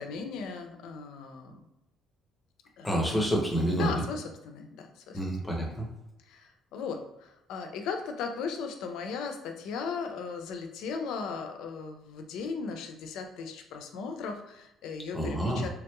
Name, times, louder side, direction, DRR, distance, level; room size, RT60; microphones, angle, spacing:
voice 1, 0.0-1.6 2.8-3.0 3.7-5.2 6.3-15.7, left 5 dB, 70° left, 5 dB, 0.4 m, -37 dB
voice 2, 2.8-4.0 5.1-5.9 15.1-15.7, right 1 dB, 5° left, -1 dB, 0.6 m, -28 dB
3.3 x 2.9 x 2.2 m, 0.90 s
cardioid pair, 165°, 0 cm